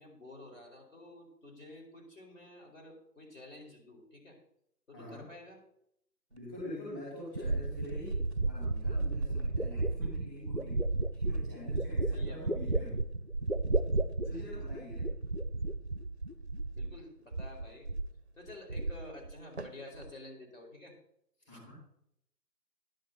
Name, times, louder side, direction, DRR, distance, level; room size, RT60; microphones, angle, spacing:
voice 1, 0.0-4.4 4.9-5.6 10.0-10.2 12.1-12.5 14.3-15.0 16.7-17.9 18.4-20.9 21.4-21.6, left 2 dB, 50° left, 1 dB, 4.6 m, -51 dB
voice 2, 4.9-5.3 6.3-10.8 11.1-13.0 14.2-15.1 21.5-21.7, left 1 dB, 10° left, -9 dB, 3.2 m, -46 dB
sound 1, 6.6-6.7 7.4-17.0 17.3-18.2 18.5-19.3 19.6-20.1, right 2 dB, 45° right, 0.5 m, -33 dB
11.0 x 10.5 x 4.3 m, 0.73 s
figure-of-eight pair, 170°, 49 cm